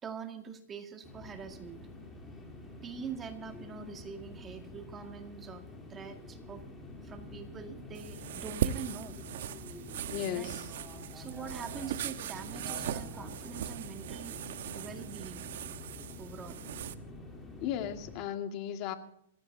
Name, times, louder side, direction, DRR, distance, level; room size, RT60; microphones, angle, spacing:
voice 1, 0.0-1.9 2.6-5.6 5.9-6.6 7.0-9.2 10.3-10.5 11.1-14.4 14.7-15.5 16.2-16.6, right 6 dB, 20° right, 5 dB, 2.1 m, -44 dB
sound 1, 1.0-18.2, left 2 dB, 10° left, 3.4 m, -47 dB
sound 2, 7.9-16.9, right 10 dB, 65° right, 1.1 m, -39 dB
voice 2, 10.1-10.7 17.6-18.9, left 10 dB, 40° left, 6 dB, 2.1 m, -35 dB
26.5 x 16.0 x 2.8 m, 0.71 s
hypercardioid pair, 145°, 0 cm